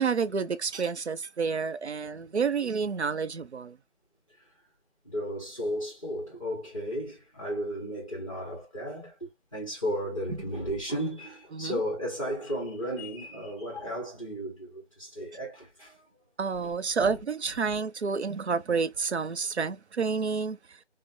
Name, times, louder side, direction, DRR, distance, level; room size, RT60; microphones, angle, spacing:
voice 1, 0.0-3.8 11.5-11.8 16.4-20.8, right 5 dB, 70° right, 0.6 m, -29 dB
voice 2, 5.0-16.0 17.0-17.2, equal, 30° left, 0.9 m, -34 dB
3.7 x 2.1 x 2.6 m
figure-of-eight pair, 170°, 35 cm